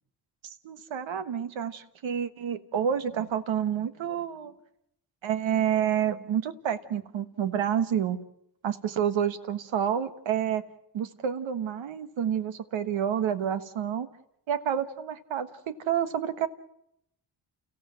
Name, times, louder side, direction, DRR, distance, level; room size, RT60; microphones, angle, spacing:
voice 1, 0.4-4.5 5.2-8.2 8.6-10.6 10.9-14.1 14.5-16.5, right 9 dB, 80° right, 11 dB, 1.5 m, -29 dB
30.0 x 15.5 x 7.7 m, 0.78 s
supercardioid pair, 55°, 46 cm